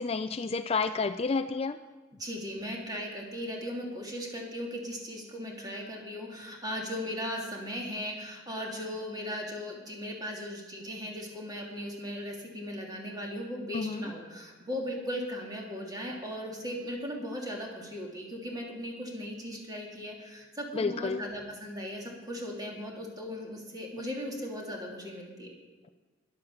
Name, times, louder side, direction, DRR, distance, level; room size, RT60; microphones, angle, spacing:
voice 1, 0.0-1.8 13.7-14.0 20.7-21.2, left 4 dB, 30° left, 10 dB, 0.4 m, -30 dB
voice 2, 2.2-25.5, equal, 20° right, -1 dB, 3.0 m, -37 dB
11.5 x 11.0 x 7.1 m, 1.3 s
head